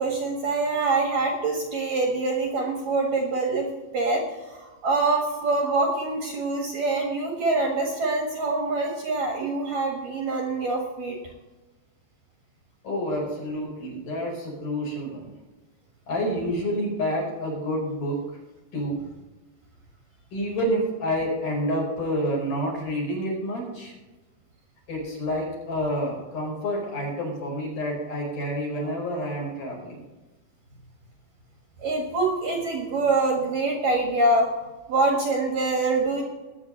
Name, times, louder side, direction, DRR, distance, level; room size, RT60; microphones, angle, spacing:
voice 1, 0.0-3.7 3.9-11.2 31.8-34.5 34.9-36.2, right 3 dB, 60° right, 0 dB, 2.8 m, -25 dB
voice 2, 12.8-15.3 16.1-18.2 18.7-19.0 20.3-23.9 24.9-29.9, equal, 45° left, -2 dB, 6.0 m, -28 dB
20.5 x 9.2 x 3.3 m, 1.2 s
omnidirectional pair, 5.4 m